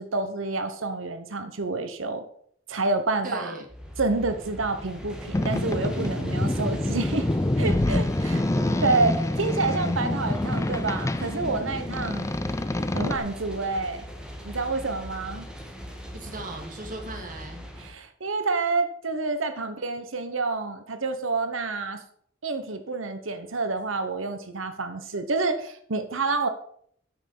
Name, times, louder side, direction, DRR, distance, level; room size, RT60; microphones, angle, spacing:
voice 1, 0.0-2.2 2.7-3.5 4.0-7.3 7.6-8.4 8.8-12.3 12.9-14.1 14.4-15.5 17.8-22.0 22.4-26.5, right 3 dB, 75° right, 8 dB, 1.2 m, -28 dB
voice 2, 3.2-3.7 8.2-9.0 16.1-17.6 21.0-21.1, right 2 dB, 45° right, 2 dB, 2.5 m, -38 dB
sound 1, 3.7-17.9, equal, 5° right, 1.8 m, -40 dB
Boat Water vehicle, 5.3-13.2, left 1 dB, 15° left, 0.5 m, -26 dB
9.0 x 6.3 x 6.9 m, 0.62 s
head